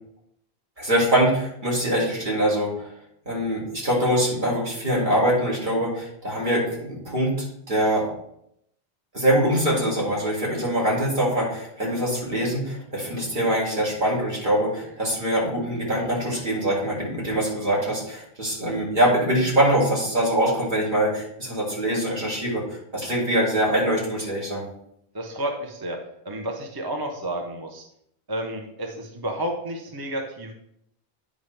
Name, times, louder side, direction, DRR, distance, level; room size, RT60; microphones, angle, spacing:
voice 1, 0.8-2.9 3.3-8.1 9.1-24.6, right 1 dB, 50° right, -5 dB, 2.6 m, -23 dB
voice 2, 25.1-26.0 26.2-27.8 28.3-30.5, right 1 dB, 25° right, 2 dB, 0.6 m, -31 dB
9.2 x 5.1 x 3.2 m, 0.75 s
omnidirectional pair, 1.1 m